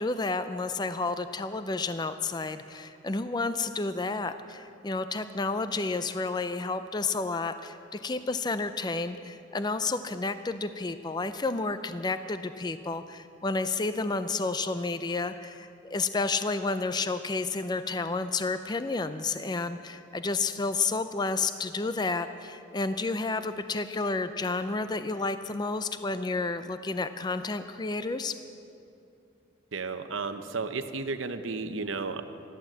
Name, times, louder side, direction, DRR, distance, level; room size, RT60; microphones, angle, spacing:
voice 1, 0.0-28.4, left 3 dB, 20° left, 11 dB, 0.4 m, -31 dB
voice 2, 29.7-32.2, right 4 dB, 75° right, 9 dB, 0.8 m, -33 dB
13.5 x 11.5 x 7.5 m, 2.7 s
head